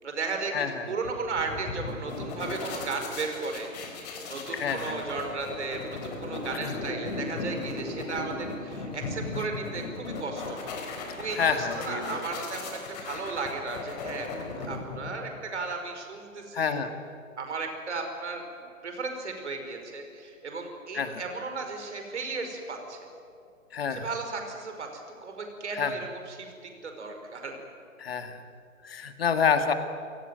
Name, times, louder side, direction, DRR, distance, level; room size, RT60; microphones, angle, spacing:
voice 1, 0.0-3.7 4.2-10.8 11.2-16.7 17.4-18.4 18.8-23.0 23.9-27.5, right 4 dB, 55° right, 4 dB, 5.5 m, -35 dB
voice 2, 0.5-0.9 4.5-5.0 6.5-6.8 9.4-9.5 11.3-12.2 16.5-16.9 20.9-21.2 23.7-24.1 25.7-26.0 28.0-28.4 28.8-29.7, left 6 dB, 45° left, 8 dB, 2.0 m, -28 dB
sound 1, 1.0-15.4, left 3 dB, 30° left, 4.1 m, -37 dB
29.5 x 17.5 x 9.4 m, 2.5 s
figure-of-eight pair, 135°, 41 cm